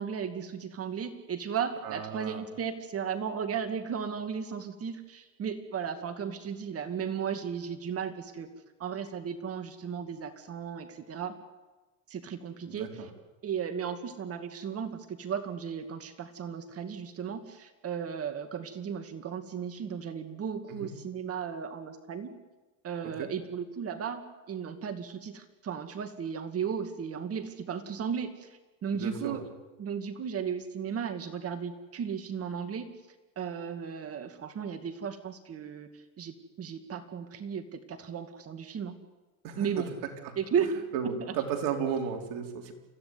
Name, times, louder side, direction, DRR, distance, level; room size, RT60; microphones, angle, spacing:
voice 1, 0.0-8.5 8.8-11.3 12.1-13.1 13.4-22.4 22.8-29.4 29.8-32.9 33.4-35.9 36.2-39.0 39.6-39.9 40.4-40.7 41.0-41.2, right 7 dB, 40° right, 8 dB, 2.3 m, -35 dB
voice 2, 1.8-2.4 12.7-13.1 20.7-20.9 23.2-23.3 28.9-29.4 39.4-39.8 40.2-40.3 40.9-42.7, right 7 dB, 55° right, 3 dB, 4.5 m, -34 dB
29.0 x 16.0 x 9.7 m, 1.2 s
supercardioid pair, 105°, 38 cm